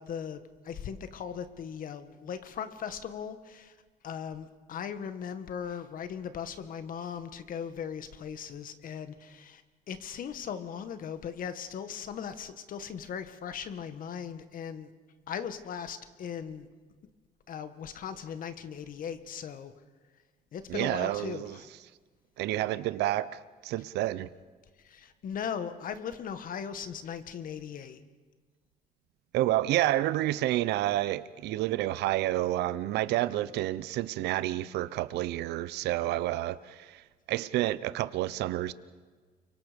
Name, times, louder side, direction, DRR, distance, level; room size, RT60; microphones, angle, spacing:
voice 1, 0.0-3.8 4.0-9.6 9.9-14.9 15.3-16.7 17.5-19.7 20.5-21.7 24.8-28.0, left 7 dB, 55° left, 1.8 m, -38 dB
voice 2, 20.7-21.6 22.4-24.3 29.3-38.7, right 15 dB, 80° right, 0.8 m, -29 dB
30.0 x 24.0 x 5.3 m
cardioid pair, 110°, 17 cm